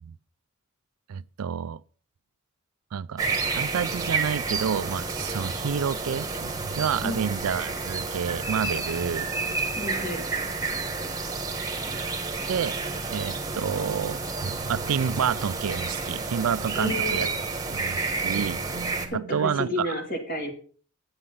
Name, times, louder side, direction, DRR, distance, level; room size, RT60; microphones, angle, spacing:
voice 1, 1.1-1.8 2.9-9.3 12.5-12.8 13.1-17.3 17.7-20.0, right 7 dB, 75° right, 0.4 m, -29 dB
sound 1, 3.2-19.1, right 4 dB, 15° right, 1.4 m, -30 dB
voice 2, 9.8-10.3 16.8-17.3 19.1-20.5, left 1 dB, 40° left, 2.6 m, -31 dB
9.8 x 8.8 x 5.4 m
head